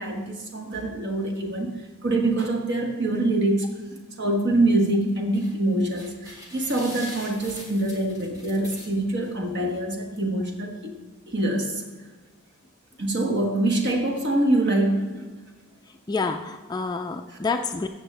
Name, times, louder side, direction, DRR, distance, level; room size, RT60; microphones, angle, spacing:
voice 1, 0.0-3.7 4.2-10.9 11.3-11.8 13.0-15.2 17.3-17.4, right 1 dB, 50° right, 2 dB, 1.4 m, -25 dB
sound 1, 5.1-5.6 5.9-9.3 9.8-9.9 10.2-10.3, left 1 dB, 15° right, 1.5 m, -42 dB
voice 2, 16.1-17.9, left 4 dB, 20° left, 6 dB, 0.3 m, -28 dB
13.5 x 7.2 x 3.3 m, 1.3 s
head